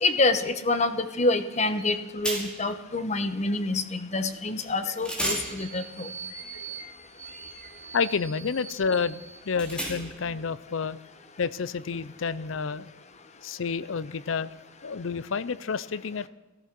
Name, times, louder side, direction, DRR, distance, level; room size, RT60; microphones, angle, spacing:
voice 1, 0.0-6.1, left 2 dB, 35° left, 10 dB, 1.0 m, -27 dB
sound 1, 1.8-1.9 2.2-2.8 4.6-4.7 5.0-10.3, right 1 dB, 5° left, 2.7 m, -36 dB
voice 2, 7.9-9.2 9.4-11.0 11.4-12.9 13.4-14.5 14.8-16.3, left 5 dB, 70° left, 17 dB, 0.6 m, -29 dB
15.0 x 14.0 x 6.0 m, 1.1 s
head